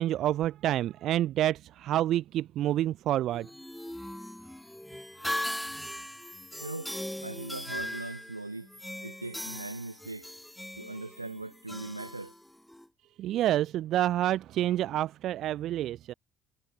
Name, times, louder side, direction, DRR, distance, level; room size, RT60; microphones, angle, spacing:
voice 1, 0.0-3.5 13.2-16.1, right 13 dB, 55° right, 0.6 m, -28 dB
sound 1, 3.3-12.9, left 1 dB, 5° left, 2.2 m, -39 dB
voice 2, 6.6-7.0 7.2-8.7 9.0-10.3 10.8-12.3, right 2 dB, 85° right, 3.9 m, -40 dB
figure-of-eight pair, 50°, 0 cm